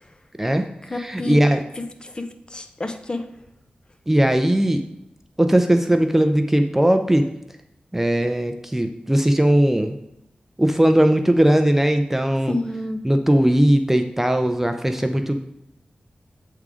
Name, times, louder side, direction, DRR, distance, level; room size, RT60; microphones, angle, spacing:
voice 1, 0.4-1.6 4.1-4.8 5.4-7.2 7.9-9.9 10.6-12.6 13.0-15.4, right 1 dB, 10° right, 7 dB, 0.4 m, -19 dB
voice 2, 0.9-1.4 2.0-3.2 12.5-13.0, left 2 dB, 30° left, 7 dB, 0.7 m, -29 dB
8.0 x 3.7 x 4.8 m, 0.81 s
wide cardioid pair, 95°, 3 cm